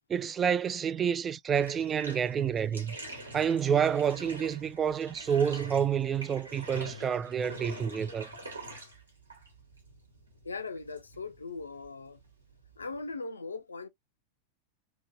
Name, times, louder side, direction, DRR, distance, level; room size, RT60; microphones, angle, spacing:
voice 1, 0.1-3.0 3.3-8.3, right 8 dB, 20° right, 0.3 m, -28 dB
Bathtub (filling or washing), 1.5-13.1, right 1 dB, 80° right, 1.2 m, -46 dB
voice 2, 10.4-12.2 12.8-13.9, left 4 dB, 75° left, 0.5 m, -39 dB
2.9 x 2.8 x 2.5 m
figure-of-eight pair, 90°, 0 cm